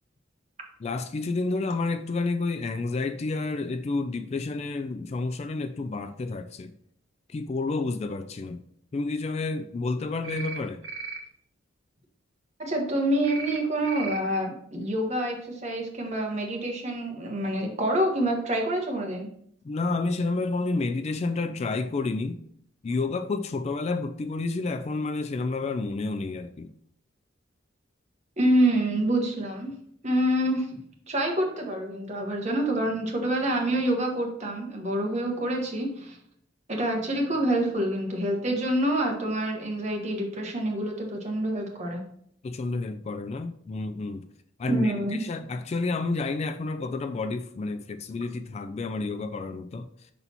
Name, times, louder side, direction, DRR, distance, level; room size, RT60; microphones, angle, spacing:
voice 1, 0.8-6.7 7.3-8.6 8.9-10.8 19.6-22.5 22.8-26.7 42.4-44.3 44.6-49.9, left 3 dB, 35° left, 0.3 m, -30 dB
sound 1, 10.2-10.6 10.8-11.2 13.2-13.6 13.8-14.2, right 4 dB, 75° right, 1.1 m, -36 dB
voice 2, 12.6-19.3 28.4-29.7 30.0-30.7 31.1-36.2 36.7-42.0 44.7-45.2, right 1 dB, 35° right, 1.3 m, -27 dB
5.6 x 4.1 x 4.3 m
head